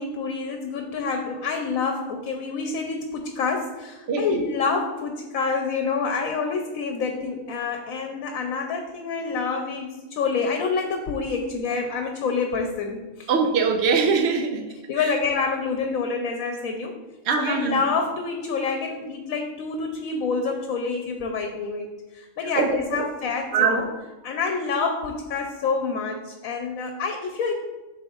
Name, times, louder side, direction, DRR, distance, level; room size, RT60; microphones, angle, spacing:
voice 1, 0.0-13.3 14.9-17.0 17.4-23.9 24.2-27.5, left 4 dB, 90° left, 3 dB, 1.1 m, -27 dB
voice 2, 4.1-4.4 13.3-14.7 15.0-15.1 17.3-17.8 22.6-23.0 23.5-23.8, right 5 dB, 60° right, 5 dB, 0.9 m, -22 dB
10.5 x 3.9 x 2.4 m, 1.2 s
omnidirectional pair, 1.4 m